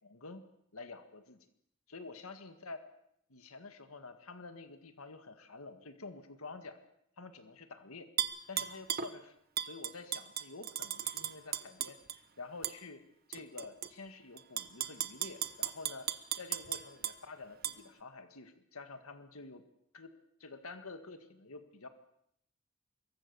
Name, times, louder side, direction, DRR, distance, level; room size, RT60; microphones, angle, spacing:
voice 1, 0.0-0.5 0.7-1.4 1.9-2.8 3.3-6.8 7.2-8.1 8.5-9.3 9.6-12.0 12.4-13.0 13.3-16.1 16.4-19.7 19.9-20.1 20.4-21.9, left 3 dB, 85° left, 8 dB, 1.8 m, -49 dB
Tap / Glass, 8.2-9.1 9.6-12.2 12.6-12.8 13.3-13.9 14.4-17.2 17.6-17.7, right 10 dB, 45° right, 1.1 m, -36 dB
25.0 x 23.0 x 7.0 m, 0.74 s
head